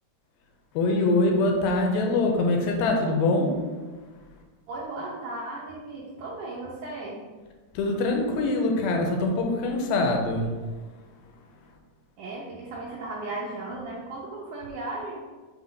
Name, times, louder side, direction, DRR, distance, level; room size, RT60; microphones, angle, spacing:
voice 1, 0.8-3.6 7.8-10.5, left 2 dB, 80° left, 2 dB, 2.4 m, -23 dB
voice 2, 4.7-7.2 12.2-15.2, right 2 dB, 75° right, -5 dB, 1.8 m, -36 dB
7.9 x 3.0 x 5.1 m, 1.3 s
omnidirectional pair, 4.7 m